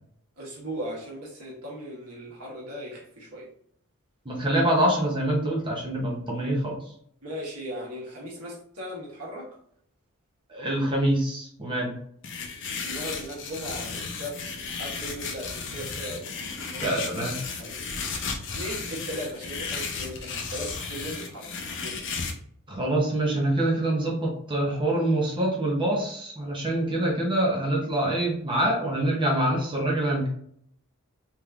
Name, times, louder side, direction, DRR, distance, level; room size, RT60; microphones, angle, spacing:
voice 1, 0.4-3.5 7.2-9.5 12.8-16.3 16.7-17.3 17.6-17.7 18.5-22.1, equal, 80° right, -3 dB, 1.4 m, -38 dB
voice 2, 4.3-6.9 10.5-12.0 16.8-17.4 22.7-30.3, right 1 dB, 20° right, -2 dB, 0.7 m, -25 dB
sound 1, 12.2-22.3, left 5 dB, 55° left, 0.6 m, -34 dB
3.5 x 3.0 x 2.4 m, 0.65 s
head